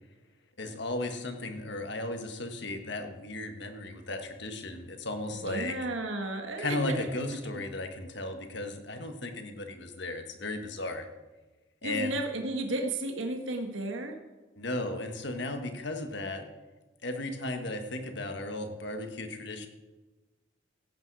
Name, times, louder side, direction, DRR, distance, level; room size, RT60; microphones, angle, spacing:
voice 1, 0.6-5.7 6.6-11.1 11.8-12.1 14.6-16.4 17.0-19.7, left 2 dB, 60° left, 5 dB, 1.6 m, -35 dB
voice 2, 5.3-7.1 11.8-14.2, right 2 dB, 70° right, 4 dB, 1.5 m, -33 dB
16.0 x 8.9 x 4.8 m, 1.2 s
head